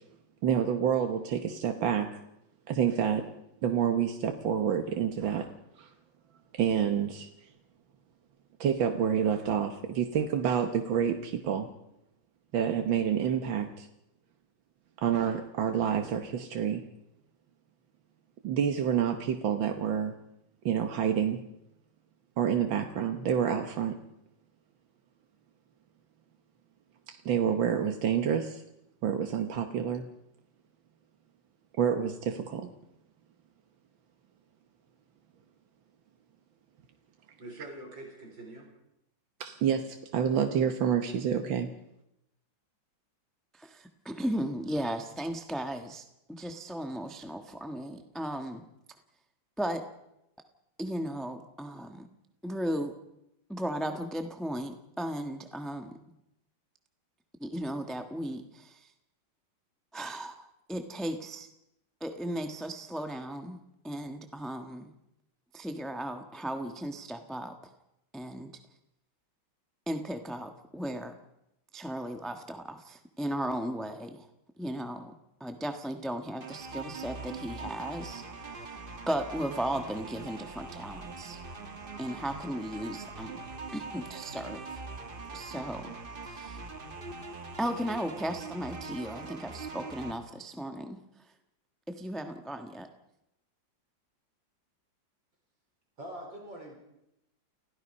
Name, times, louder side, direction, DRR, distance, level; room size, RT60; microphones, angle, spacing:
voice 1, 0.4-2.2 2.7-3.3 3.6-5.5 5.8-5.9 6.5-7.5 8.6-11.7 12.5-13.9 15.0-16.8 18.4-20.1 20.7-21.4 22.4-24.0 27.1-28.6 29.0-30.0 31.8-32.7 39.4-41.7, right 8 dB, 90° right, 5 dB, 1.9 m, -28 dB
voice 2, 37.4-38.7 96.0-96.8, right 1 dB, 75° right, 0 dB, 5.3 m, -44 dB
voice 3, 43.5-48.6 49.6-49.8 50.8-52.1 52.4-52.9 53.5-55.9 57.4-58.9 59.9-61.5 62.0-63.6 63.8-64.9 65.5-67.7 68.1-68.5 69.9-71.1 71.7-74.3 74.6-75.1 75.4-78.8 79.1-81.4 82.0-84.8 85.3-85.9 86.2-86.6 87.6-91.0 91.9-92.9, equal, ahead, 5 dB, 1.1 m, -36 dB
sound 1, 76.4-90.1, right 3 dB, 30° right, 1.4 m, -42 dB
30.0 x 16.5 x 5.5 m, 0.84 s
omnidirectional pair, 2.0 m